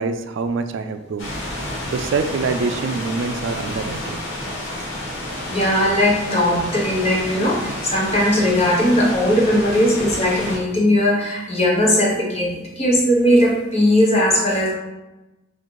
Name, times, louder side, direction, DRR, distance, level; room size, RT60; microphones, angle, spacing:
voice 1, 0.0-1.3 1.9-4.2, right 4 dB, 70° right, 9 dB, 0.3 m, -25 dB
sound 1, 1.2-10.6, left 1 dB, 85° left, 1.4 m, -30 dB
voice 2, 5.5-14.7, equal, 30° left, -4 dB, 1.0 m, -18 dB
3.9 x 2.5 x 4.5 m, 1.0 s
head